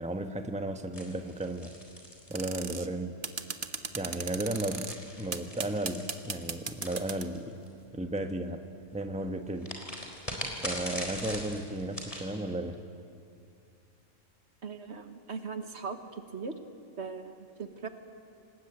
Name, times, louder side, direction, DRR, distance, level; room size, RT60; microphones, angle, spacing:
voice 1, 0.0-1.7 2.3-3.2 3.9-7.6 7.9-8.6 8.9-9.7 10.6-12.8, right 1 dB, 5° right, 6 dB, 1.1 m, -34 dB
sound 1, 0.9-2.9 3.9-7.7 9.6-12.3, equal, 25° left, 4.2 m, -41 dB
sound 2, 2.3-2.9 3.2-5.0 5.3-7.3, right 5 dB, 45° right, 1.2 m, -36 dB
voice 2, 14.6-16.5 17.0-17.9, right 5 dB, 60° right, 7 dB, 1.6 m, -39 dB
27.0 x 19.5 x 8.9 m, 2.4 s
omnidirectional pair, 1.3 m